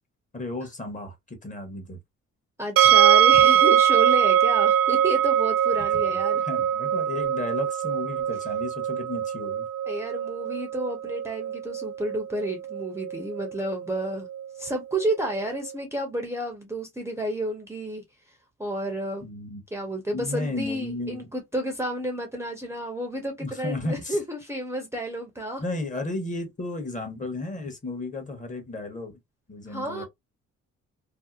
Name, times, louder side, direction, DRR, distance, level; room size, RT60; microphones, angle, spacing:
voice 1, 0.3-2.0 6.1-9.7 19.2-19.6 20.1-21.3 23.4-24.2 25.6-29.2 29.5-30.0, left 2 dB, 25° left, 1.0 m, -34 dB
voice 2, 2.6-6.4 9.9-14.3 14.6-18.0 18.6-19.2 19.7-25.6 29.7-30.0, right 1 dB, 10° right, 0.6 m, -31 dB
sound 1, 2.8-15.7, right 10 dB, 50° right, 0.4 m, -23 dB
2.7 x 2.0 x 2.3 m
cardioid pair, 90°, 30 cm